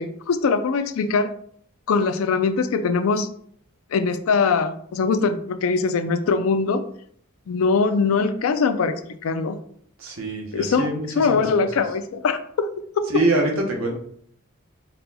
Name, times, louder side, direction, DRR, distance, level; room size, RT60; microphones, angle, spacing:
voice 1, 0.0-1.3 1.9-3.3 3.9-6.9 7.5-9.6 10.5-12.7 13.0-13.1, left 4 dB, 80° left, 11 dB, 0.4 m, -22 dB
voice 2, 10.0-11.7 13.1-13.9, right 2 dB, 75° right, 0 dB, 0.9 m, -24 dB
4.1 x 4.0 x 2.2 m, 0.63 s
head